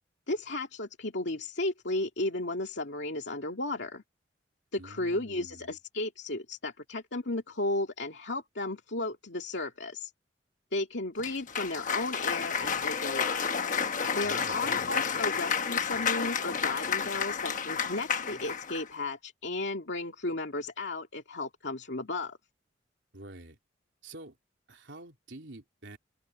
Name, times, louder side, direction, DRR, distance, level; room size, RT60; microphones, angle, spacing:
voice 1, 0.3-4.0 4.7-10.1 10.7-13.4 14.1-22.4, left 2 dB, 75° left, 2.3 m, -34 dB
voice 2, 4.8-5.7 14.2-15.0 23.1-23.6 24.0-24.4 24.7-26.0, right 2 dB, 80° right, 3.5 m, -48 dB
Cheering / Applause, 11.2-18.9, left 6 dB, 45° left, 1.1 m, -31 dB
head